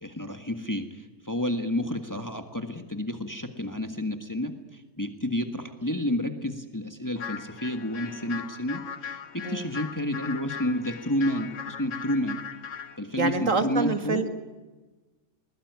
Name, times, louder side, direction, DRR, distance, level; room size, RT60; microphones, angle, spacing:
voice 1, 0.0-12.4 13.0-14.2, left 1 dB, 15° left, 7 dB, 1.6 m, -30 dB
sound 1, 7.2-13.0, left 7 dB, 60° left, 1.3 m, -39 dB
voice 2, 13.2-14.3, right 4 dB, 60° right, 8 dB, 2.0 m, -26 dB
21.5 x 20.5 x 9.6 m, 1.2 s
omnidirectional pair, 1.5 m